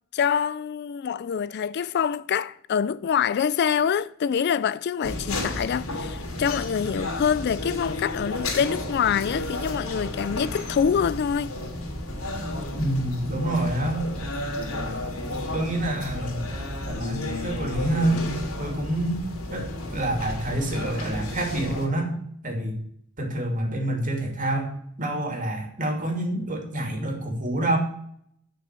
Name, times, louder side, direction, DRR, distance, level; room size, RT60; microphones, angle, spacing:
voice 1, 0.1-11.5, left 7 dB, 50° left, 0.3 m, -25 dB
sound 1, 5.0-21.9, left 1 dB, 85° left, 3.1 m, -32 dB
voice 2, 12.8-14.0 15.5-16.5 16.9-18.2 18.6-19.2 19.5-22.1 22.4-22.8 23.2-27.8, right 1 dB, 35° right, 2.6 m, -27 dB
9.7 x 6.3 x 7.4 m
head